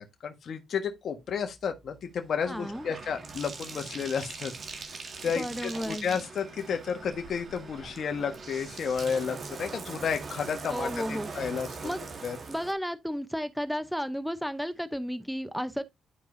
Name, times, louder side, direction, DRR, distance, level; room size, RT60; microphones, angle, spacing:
voice 1, 0.0-4.5 5.2-11.7 12.2-12.4, left 6 dB, 55° left, 1.4 m, -32 dB
Bathtub (filling or washing), 1.4-12.7, right 4 dB, 45° right, 1.8 m, -42 dB
voice 2, 2.5-2.9 5.4-6.1 10.7-11.3 11.8-12.0 12.5-15.8, equal, ahead, 0.6 m, -33 dB
11.5 x 4.7 x 2.6 m
cardioid pair, 90°, 0 cm